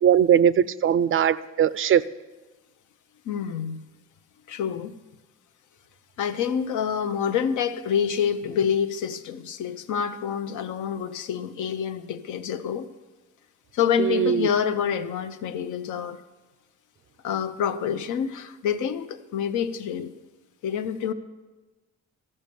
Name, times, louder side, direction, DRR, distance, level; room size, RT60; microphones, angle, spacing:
voice 1, 0.0-2.0 14.0-14.5, right 9 dB, 45° right, 17 dB, 0.4 m, -20 dB
voice 2, 3.3-3.8 4.5-5.0 6.2-12.9 13.7-16.2 17.2-20.1 20.6-21.1, left 8 dB, 75° left, 10 dB, 0.8 m, -27 dB
14.0 x 5.4 x 6.8 m, 1.2 s
cardioid pair, 90°, 30 cm